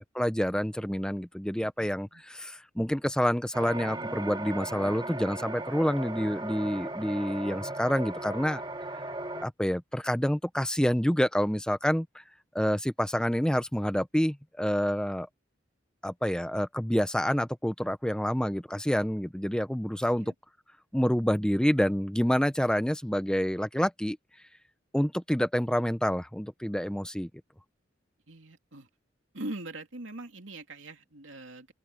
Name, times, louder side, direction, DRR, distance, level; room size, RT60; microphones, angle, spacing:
voice 1, 0.0-8.6 9.4-12.2 12.5-15.3 16.0-20.3 20.9-24.2 24.9-27.3, equal, 5° left, 0.7 m, -28 dB
voice 2, 1.6-2.2 19.5-19.6 20.2-20.3 28.3-28.9 29.3-31.7, right 2 dB, 85° right, 3.0 m, -42 dB
sound 1, 3.5-9.5, right 2 dB, 25° right, 2.0 m, -37 dB
open air
head